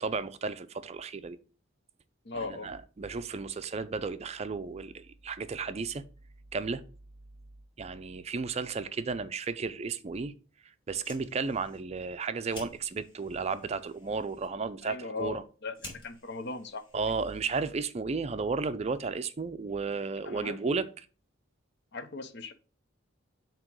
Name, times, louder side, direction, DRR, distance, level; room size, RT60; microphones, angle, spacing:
voice 1, 0.0-1.4 2.3-6.0 6.5-6.8 7.8-10.3 10.9-15.4 16.9-20.9, right 4 dB, 30° right, 0.4 m, -33 dB
voice 2, 2.2-2.7 14.8-15.7 16.0-16.8 20.2-20.8 21.9-22.5, left 3 dB, 55° left, 0.8 m, -38 dB
Fire, 10.8-17.7, left 2 dB, 25° left, 3.2 m, -52 dB
7.4 x 2.9 x 6.0 m
head